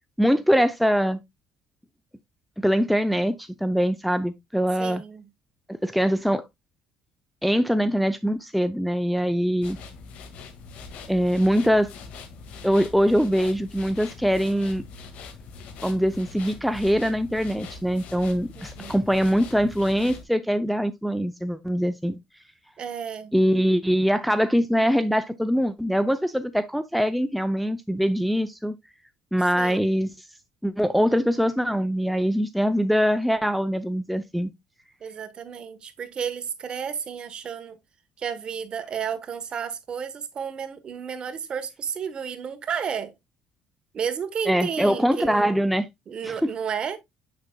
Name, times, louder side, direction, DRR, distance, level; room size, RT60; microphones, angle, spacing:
voice 1, 0.2-1.2 2.6-5.0 5.8-6.4 7.4-9.8 11.1-11.9 12.6-14.8 15.8-22.2 23.3-28.7 29.3-30.1 30.6-34.5 44.5-45.9 46.2-46.5, equal, ahead, 0.5 m, -23 dB
voice 2, 4.8-5.3 18.5-18.9 22.8-23.3 29.5-29.9 35.0-37.8 38.2-43.1 43.9-45.6 46.1-47.0, right 7 dB, 40° right, 1.1 m, -32 dB
sound 1, 9.6-20.2, left 5 dB, 70° left, 1.7 m, -42 dB
7.2 x 6.7 x 2.2 m
cardioid pair, 115°, 2 cm